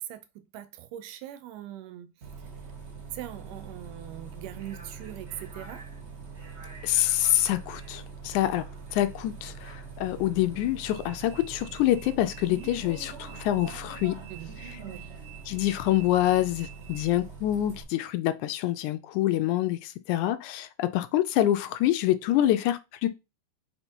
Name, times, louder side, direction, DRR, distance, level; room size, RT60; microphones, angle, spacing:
voice 1, 0.0-2.1 3.1-5.8 14.3-14.5 14.8-15.1, right 12 dB, 85° right, 2.3 m, -41 dB
Bus, 2.2-17.8, right 5 dB, 65° right, 0.6 m, -43 dB
voice 2, 6.8-8.7 8.9-14.2 15.5-23.1, left 13 dB, 80° left, 1.8 m, -26 dB
5.4 x 4.3 x 4.5 m
omnidirectional pair, 3.7 m